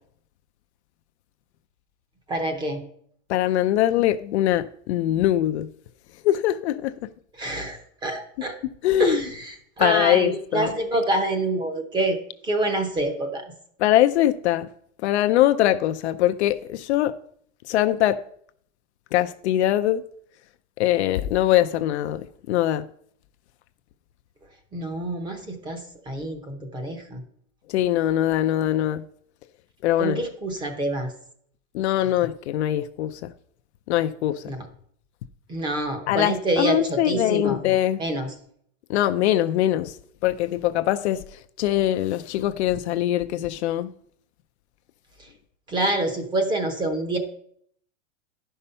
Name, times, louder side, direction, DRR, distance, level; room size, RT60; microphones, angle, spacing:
voice 1, 2.3-2.8 7.4-8.6 9.0-12.2 12.4-13.5 24.7-27.2 30.0-31.1 34.5-34.6 35.5-37.6 38.0-38.3 45.7-47.2, right 2 dB, 10° right, 0.8 m, -26 dB
voice 2, 3.3-5.7 6.2-7.1 8.8-9.2 9.8-10.7 13.8-14.7 15.0-17.1 17.7-18.2 19.1-20.0 20.8-22.8 27.7-29.0 29.8-30.2 31.7-33.3 33.9-34.5 36.1-38.0 38.9-39.9 40.2-41.2 41.6-43.9, left 13 dB, 55° left, 0.5 m, -22 dB
11.0 x 5.5 x 5.5 m
supercardioid pair, 165°, 41 cm